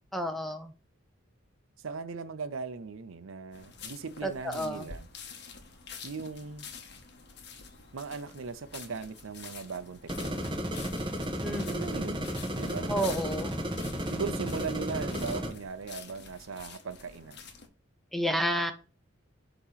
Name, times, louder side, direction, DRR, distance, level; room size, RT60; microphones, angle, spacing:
voice 1, 0.1-0.7 4.2-4.9 11.4-11.9 12.9-13.5 18.1-18.7, equal, ahead, 0.7 m, -30 dB
voice 2, 1.8-5.1 6.0-6.6 7.9-10.7 11.6-12.3 12.5-13.3 14.1-17.5, right 5 dB, 85° right, 0.6 m, -39 dB
sound 1, 3.5-17.7, left 5 dB, 55° left, 1.0 m, -48 dB
sound 2, 10.1-15.5, equal, 25° right, 1.3 m, -33 dB
8.3 x 3.0 x 5.7 m
head